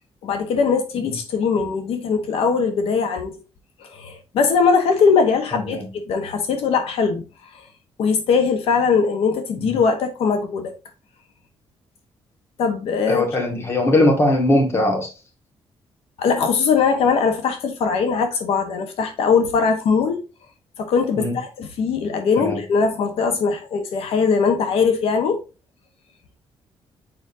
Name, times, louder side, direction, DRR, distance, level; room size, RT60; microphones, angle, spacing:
voice 1, 0.2-3.4 3.8-7.2 7.5-7.6 8.0-10.7 12.6-13.3 16.2-20.2 20.8-25.4, left 5 dB, 75° left, 1.1 m, -20 dB
voice 2, 5.5-5.8 13.1-15.1 21.2-21.4 22.4-22.6, left 1 dB, 25° left, 1.7 m, -20 dB
7.1 x 5.2 x 2.7 m
cardioid pair, 180°, 10 cm